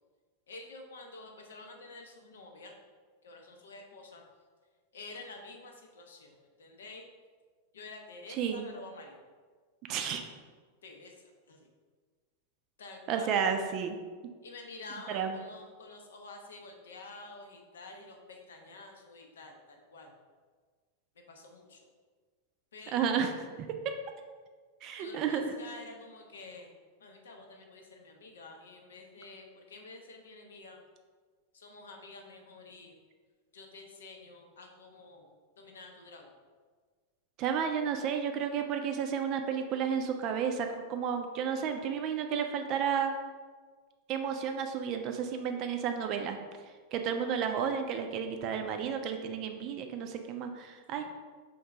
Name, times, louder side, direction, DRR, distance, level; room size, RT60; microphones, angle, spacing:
voice 1, 0.5-2.7 3.2-4.2 4.9-7.1 7.7-9.3 10.8-11.7 12.8-13.3 14.4-20.1 21.3-21.9 22.7-23.2 25.0-26.7 27.0-30.8 31.5-33.0 33.5-35.3 35.6-36.3 50.9-51.0, left 3 dB, 65° left, 3 dB, 0.6 m, -49 dB
voice 2, 8.3-8.7 9.9-10.2 13.1-14.0 15.1-15.4 22.9-23.3 23.6-23.8 24.8-25.5 37.4-43.1 44.1-46.4 46.9-51.0, right 7 dB, 40° right, 5 dB, 0.4 m, -32 dB
3.7 x 2.6 x 4.4 m, 1.5 s
figure-of-eight pair, 90°, 0 cm